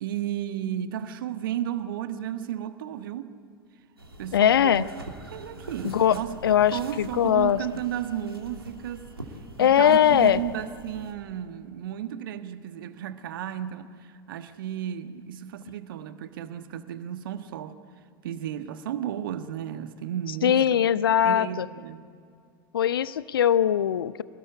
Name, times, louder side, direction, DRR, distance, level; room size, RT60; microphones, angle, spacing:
voice 1, 0.0-3.3 4.2-4.8 5.3-6.4 6.7-9.1 9.6-13.9 14.3-17.7 18.2-20.7 21.2-22.0, right 10 dB, 65° right, 10 dB, 1.4 m, -33 dB
sound 1, 4.0-11.1, right 1 dB, 90° right, 2.9 m, -43 dB
voice 2, 4.3-4.8 5.8-7.6 9.6-10.4 20.4-21.7 22.7-24.2, left 10 dB, 70° left, 17 dB, 0.6 m, -21 dB
25.0 x 19.5 x 9.8 m, 2.3 s
figure-of-eight pair, 80°, 12 cm